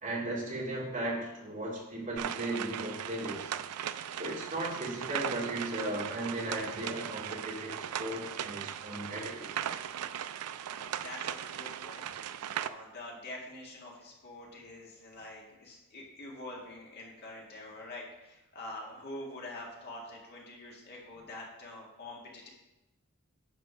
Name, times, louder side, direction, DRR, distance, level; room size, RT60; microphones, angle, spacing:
voice 1, 0.0-3.5 4.1-9.5, right 1 dB, 35° right, -4 dB, 2.3 m, -36 dB
sound 1, 2.2-12.7, right 9 dB, 85° right, 0.4 m, -38 dB
voice 2, 10.7-12.1 12.6-22.5, left 1 dB, 45° left, -2 dB, 1.9 m, -45 dB
10.5 x 4.2 x 5.7 m, 0.96 s
head